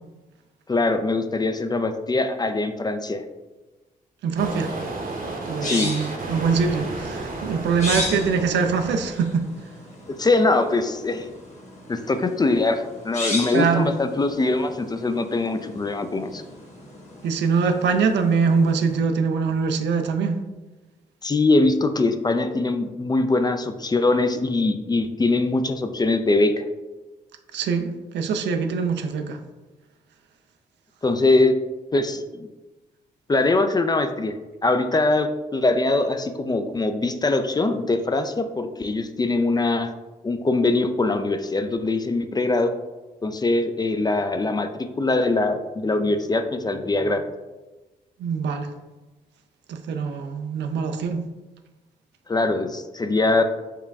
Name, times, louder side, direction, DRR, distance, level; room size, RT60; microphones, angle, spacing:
voice 1, 0.7-3.2 5.6-5.9 10.2-11.3 11.9-16.4 21.2-26.6 31.0-31.5 31.9-32.5 33.3-34.3 34.6-39.9 40.2-42.7 43.2-47.2 52.3-53.4, left 2 dB, 20° left, 8 dB, 0.4 m, -22 dB
voice 2, 4.2-4.7 5.5-9.4 13.5-13.9 17.2-20.4 27.5-29.4 48.2-48.7 49.7-51.2, right 5 dB, 70° right, 7 dB, 0.5 m, -23 dB
sound 1, 4.4-9.3, right 2 dB, 45° right, 0.9 m, -33 dB
sound 2, 5.2-19.0, left 2 dB, 35° left, 1.4 m, -36 dB
4.7 x 2.2 x 3.4 m, 1.2 s
hypercardioid pair, 45°, 19 cm